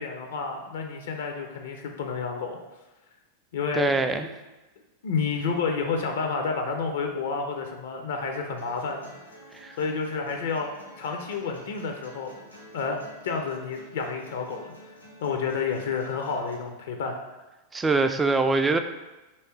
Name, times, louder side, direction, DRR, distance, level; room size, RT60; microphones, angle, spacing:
voice 1, 0.0-2.6 3.5-4.3 5.0-9.1 9.8-10.7 11.0-12.3 12.7-14.7 15.2-17.2, left 5 dB, 60° left, 3 dB, 0.5 m, -30 dB
voice 2, 3.7-4.3 9.5-9.8 17.7-18.8, right 3 dB, 15° right, 7 dB, 0.3 m, -23 dB
sound 1, 8.6-16.5, equal, 90° left, 1.1 m, -49 dB
3.2 x 3.1 x 4.3 m, 1.1 s
figure-of-eight pair, 90°, 0 cm